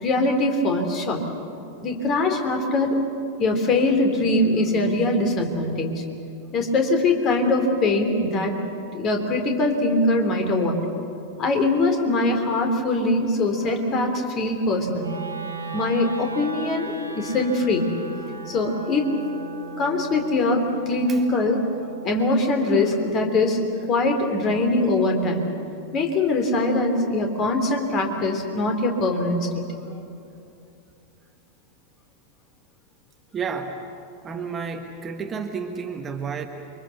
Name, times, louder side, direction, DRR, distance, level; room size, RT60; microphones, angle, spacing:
voice 1, 0.0-1.2 1.8-3.0 3.4-6.0 6.5-8.6 8.9-10.8 11.4-15.1 15.7-17.9 18.5-19.1 19.8-21.6 22.0-23.6 23.9-25.5 25.9-29.7, left 2 dB, 30° left, 4 dB, 3.6 m, -22 dB
Wind instrument woodwind instrument, 15.0-25.1, right 3 dB, 80° right, 1.9 m, -38 dB
voice 2, 33.3-33.8 34.2-36.5, right 5 dB, 20° right, 5 dB, 1.5 m, -31 dB
29.0 x 24.0 x 6.8 m, 2.6 s
figure-of-eight pair, 90°, 0 cm